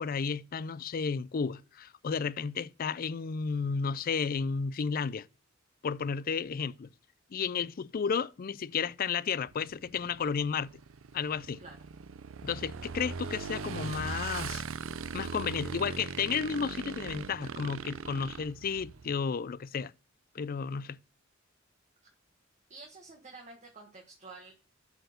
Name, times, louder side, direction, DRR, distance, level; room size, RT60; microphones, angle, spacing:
voice 1, 0.0-5.3 5.8-6.9 7.3-10.8 11.1-11.6 12.4-14.6 15.1-19.9 20.3-21.0, left 6 dB, 45° left, 0.4 m, -32 dB
Motorcycle / Engine, 9.5-19.2, right 5 dB, 85° right, 0.6 m, -40 dB
voice 2, 22.7-24.5, right 3 dB, 35° right, 1.5 m, -49 dB
7.8 x 4.6 x 6.6 m
head